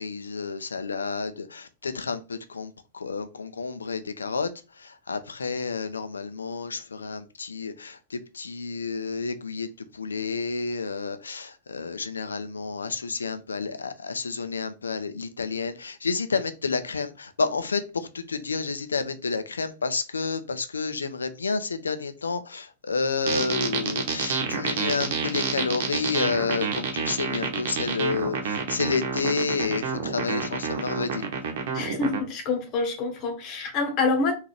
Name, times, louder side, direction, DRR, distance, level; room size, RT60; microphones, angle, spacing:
voice 1, 0.0-31.2, left 4 dB, 85° left, 0.5 m, -30 dB
sound 1, 23.3-32.2, right 5 dB, 60° right, 0.9 m, -28 dB
voice 2, 31.7-34.3, left 3 dB, 40° left, 1.2 m, -26 dB
3.9 x 2.7 x 3.3 m
hypercardioid pair, 100°, 0 cm